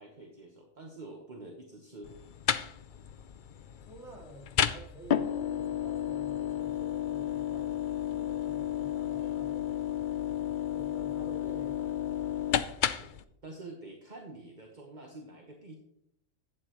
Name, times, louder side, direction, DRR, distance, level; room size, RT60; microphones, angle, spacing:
voice 1, 0.0-2.1 13.0-13.1 13.4-15.7, right 2 dB, 35° right, 1 dB, 1.3 m, -47 dB
sound 1, 2.0-13.2, left 10 dB, 65° left, 0.5 m, -32 dB
voice 2, 3.8-9.8 10.7-12.3, right 1 dB, ahead, -6 dB, 3.7 m, -50 dB
12.0 x 9.0 x 3.0 m, 0.76 s
omnidirectional pair, 1.4 m